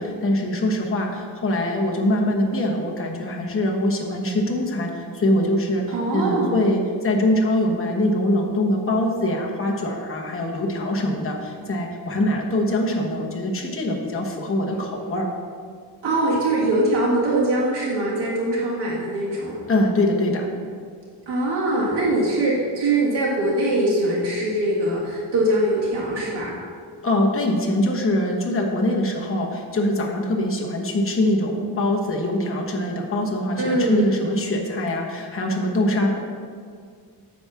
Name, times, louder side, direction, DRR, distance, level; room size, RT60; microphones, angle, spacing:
voice 1, 0.0-5.8 6.1-15.3 19.7-20.5 27.0-36.2, left 1 dB, 30° left, -1 dB, 1.1 m, -23 dB
voice 2, 5.9-6.6 16.0-19.6 21.3-26.5 33.6-34.0, right 1 dB, 75° right, -7 dB, 1.8 m, -22 dB
9.1 x 3.5 x 6.9 m, 2.1 s
wide cardioid pair, 175°, 42 cm